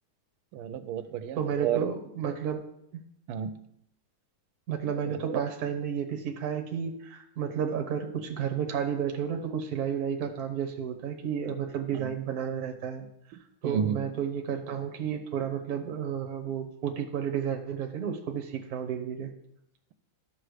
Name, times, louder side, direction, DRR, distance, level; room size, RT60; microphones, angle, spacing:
voice 1, 0.5-1.9 3.3-3.5 5.1-5.4 11.9-12.1 13.6-14.0, right 9 dB, 90° right, 11 dB, 1.5 m, -31 dB
voice 2, 1.4-2.6 4.7-13.1 13.6-19.3, right 8 dB, 55° right, 5 dB, 1.4 m, -32 dB
12.0 x 6.4 x 3.3 m, 0.76 s
omnidirectional pair, 2.3 m